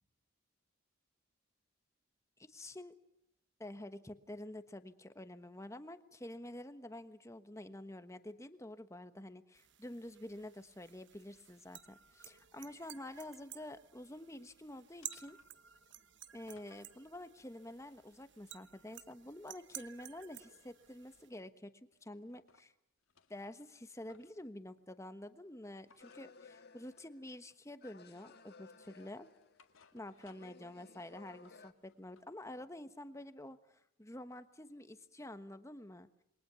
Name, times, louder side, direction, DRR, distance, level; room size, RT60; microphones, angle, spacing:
voice 1, 2.4-2.9 3.6-15.4 16.3-21.7 22.0-22.7 23.3-29.3 29.9-36.1, left 1 dB, 15° left, 10 dB, 1.2 m, -49 dB
sound 1, 9.5-21.3, right 12 dB, 60° right, 1.1 m, -54 dB
sound 2, 12.9-13.8 14.2-14.6 15.0-17.0 17.5-19.3 19.7-21.5 21.9-22.7 23.0-24.4 25.8-26.3 26.9-27.2 27.5-28.2 28.6-30.6 31.0-32.3, left 5 dB, 80° left, 1.9 m, -69 dB
sound 3, 26.0-27.5 27.8-29.8 30.2-31.7, left 4 dB, 50° left, 1.5 m, -59 dB
27.5 x 23.0 x 6.9 m, 0.79 s
head